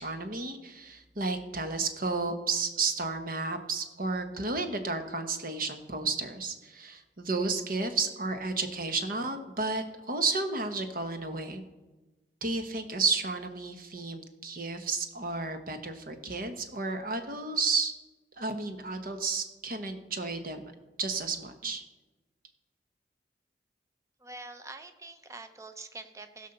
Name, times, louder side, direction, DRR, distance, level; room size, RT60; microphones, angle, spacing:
voice 1, 0.0-11.6 12.4-17.9 18.4-20.7 21.0-21.8, right 3 dB, 50° right, 7 dB, 1.2 m, -32 dB
voice 2, 24.2-26.5, right 2 dB, 15° right, 8 dB, 0.7 m, -45 dB
15.5 x 5.5 x 6.7 m, 1.1 s
head